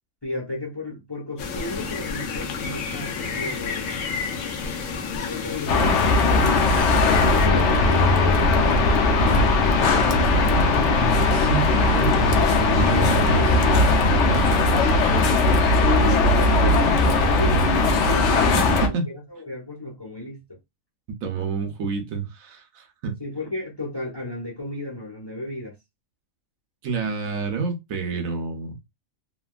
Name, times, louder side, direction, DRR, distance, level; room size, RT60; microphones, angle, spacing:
voice 1, 0.2-3.9 5.2-9.0 9.3-10.5 11.8-13.5 15.1-20.4 23.2-25.8, left 2 dB, 25° left, 0.7 m, -35 dB
sound 1, 1.4-7.5, left 5 dB, 85° left, 1.1 m, -30 dB
sound 2, 5.7-18.9, left 3 dB, 65° left, 0.9 m, -19 dB
voice 2, 11.2-12.4 12.7-13.8 14.3-14.9 18.4-19.1 21.2-23.2 26.8-28.8, right 4 dB, 80° right, 1.2 m, -29 dB
3.3 x 2.2 x 2.3 m
omnidirectional pair, 1.4 m